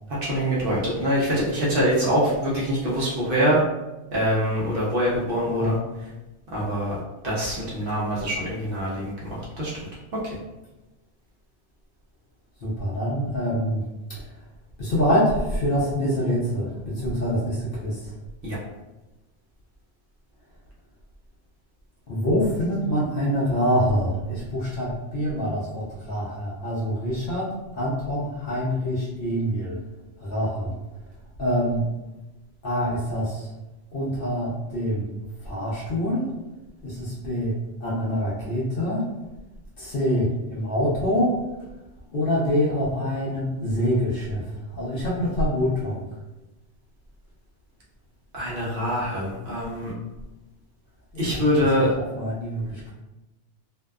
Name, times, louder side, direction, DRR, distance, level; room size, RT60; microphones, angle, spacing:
voice 1, 0.1-3.6 4.1-6.1 6.5-7.0 7.2-9.7 10.1-10.4 18.4-18.6 48.3-49.9 51.2-51.9, equal, 55° right, -6 dB, 0.8 m, -24 dB
voice 2, 12.6-13.8 14.1-14.2 14.8-18.1 22.1-27.5 27.7-29.8 30.2-30.7 31.4-31.9 32.6-33.5 33.9-35.1 35.4-36.3 36.8-39.0 39.8-41.4 42.1-44.5 44.7-46.0 51.8-51.9 52.1-52.9, equal, 55° left, -6 dB, 0.7 m, -25 dB
2.6 x 2.2 x 2.2 m, 1.0 s
omnidirectional pair, 1.2 m